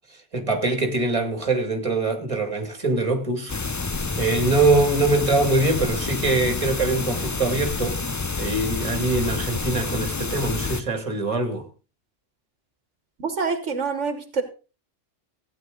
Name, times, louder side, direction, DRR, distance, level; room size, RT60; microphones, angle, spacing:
voice 1, 0.1-3.6 4.2-8.0 8.4-11.7, right 2 dB, 25° right, 2.2 m, -23 dB
sound 1, 3.5-10.8, left 4 dB, 30° left, 0.3 m, -28 dB
voice 2, 13.2-14.4, right 5 dB, 75° right, 1.7 m, -26 dB
15.5 x 9.4 x 3.8 m
omnidirectional pair, 1.2 m